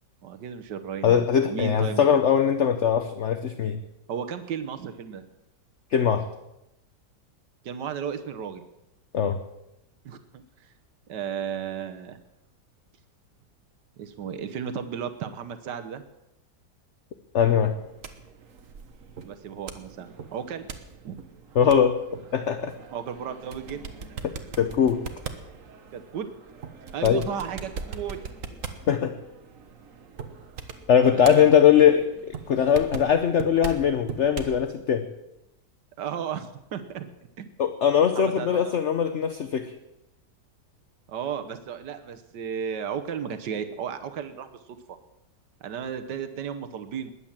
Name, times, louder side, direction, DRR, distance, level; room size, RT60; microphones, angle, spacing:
voice 1, 0.2-1.2 1.5-2.0 4.1-5.2 7.6-8.6 10.0-10.7 11.1-12.2 14.0-16.0 19.2-20.7 21.0-21.2 22.9-24.0 25.9-26.3 26.9-28.2 31.1-31.4 36.0-37.1 37.4-37.5 38.1-38.8 41.1-44.5 45.6-47.1, right 7 dB, 85° right, 8 dB, 1.6 m, -34 dB
voice 2, 1.0-3.8 5.9-6.3 9.1-9.4 17.3-17.7 21.5-22.0 22.3-22.7 24.2-24.3 24.6-25.0 27.0-27.2 28.9-29.1 30.9-35.1 37.6-39.7, left 8 dB, 50° left, 9 dB, 1.0 m, -21 dB
sound 1, 17.6-34.6, right 5 dB, 55° right, 1.5 m, -41 dB
20.5 x 8.8 x 7.3 m, 0.90 s
omnidirectional pair, 1.8 m